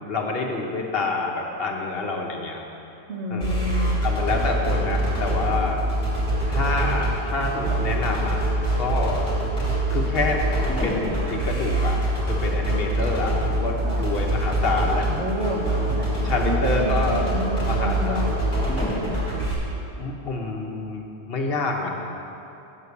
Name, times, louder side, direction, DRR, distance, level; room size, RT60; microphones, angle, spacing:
voice 1, 0.0-2.6 3.3-5.8 6.5-8.4 8.8-9.2 9.9-10.4 10.8-12.0 12.3-15.2 16.2-17.2 17.6-18.3 20.0-22.0, left 3 dB, 60° left, 0 dB, 1.1 m, -27 dB
voice 2, 3.1-4.0 4.3-4.4 13.8-14.1 15.1-15.6 15.9-16.1 16.4-18.3, left 1 dB, 80° right, -2 dB, 1.6 m, -29 dB
sound 1, 3.4-19.5, right 1 dB, 25° left, 2.4 m, -24 dB
8.1 x 5.9 x 7.0 m, 2.8 s
omnidirectional pair, 1.2 m